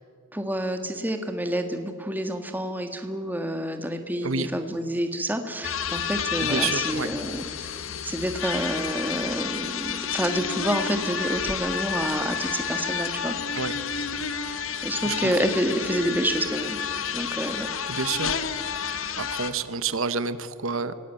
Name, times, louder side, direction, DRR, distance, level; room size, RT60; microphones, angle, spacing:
voice 1, 0.3-7.8 8.0-13.3 14.8-16.8 17.1-17.7, equal, 10° right, 7 dB, 1.5 m, -28 dB
sound 1, 5.6-19.5, left 7 dB, 75° left, 1.4 m, -30 dB
voice 2, 6.4-7.1 13.5-13.8 15.0-15.4 17.9-18.3 19.2-20.9, right 5 dB, 80° right, 13 dB, 1.1 m, -29 dB
25.5 x 18.0 x 9.1 m, 2.1 s
head